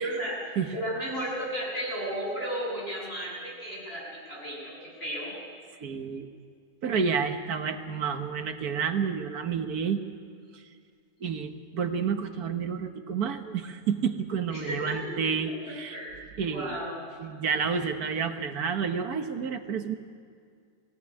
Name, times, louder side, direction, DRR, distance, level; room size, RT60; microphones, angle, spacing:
voice 1, 0.0-5.3 14.5-17.1, equal, 40° left, -4 dB, 8.0 m, -34 dB
voice 2, 5.8-6.3 6.8-10.0 10.5-10.6 11.2-16.0 16.4-16.9 17.2-20.0, right 6 dB, 75° right, 7 dB, 1.7 m, -30 dB
21.0 x 16.5 x 9.8 m, 2.2 s
omnidirectional pair, 1.6 m